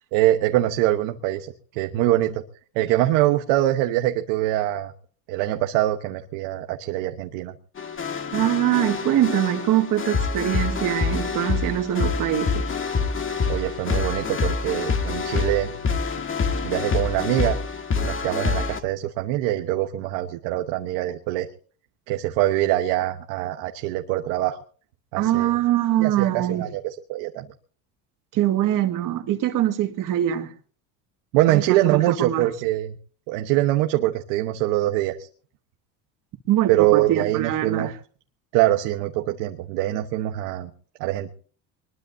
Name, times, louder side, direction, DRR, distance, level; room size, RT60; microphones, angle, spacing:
voice 1, 0.1-2.4 2.7-4.9 5.3-7.5 13.5-15.7 16.6-17.6 18.0-21.5 22.1-24.6 25.1-25.5 26.0-27.4 31.3-33.0 33.3-35.3 36.7-37.9 38.5-40.7 41.0-41.3, right 15 dB, 80° right, 1.2 m, -23 dB
sound 1, 7.8-18.8, left 5 dB, 30° left, 2.1 m, -26 dB
voice 2, 8.3-12.7 25.2-26.6 28.3-30.5 31.5-32.5 36.5-37.9, right 12 dB, 55° right, 2.1 m, -23 dB
22.5 x 21.0 x 2.7 m
supercardioid pair, 110°, 38 cm